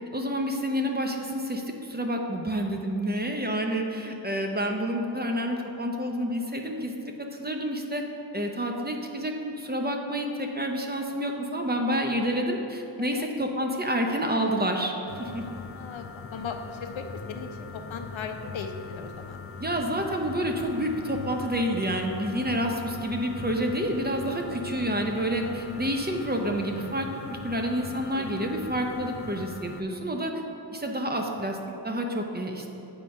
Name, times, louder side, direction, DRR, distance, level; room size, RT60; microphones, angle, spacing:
voice 1, 0.1-8.0 8.3-14.9 15.2-15.4 19.6-30.3 30.7-31.6 31.8-32.7, equal, 20° right, 2 dB, 0.6 m, -29 dB
sound 1, 15.1-29.8, left 5 dB, 30° left, 0.4 m, -41 dB
voice 2, 15.4-16.1 16.3-19.4 20.6-20.7 22.3-22.5 25.7-25.9, left 5 dB, 80° left, 6 dB, 0.7 m, -38 dB
7.6 x 4.4 x 5.3 m, 2.9 s
wide cardioid pair, 115°, 46 cm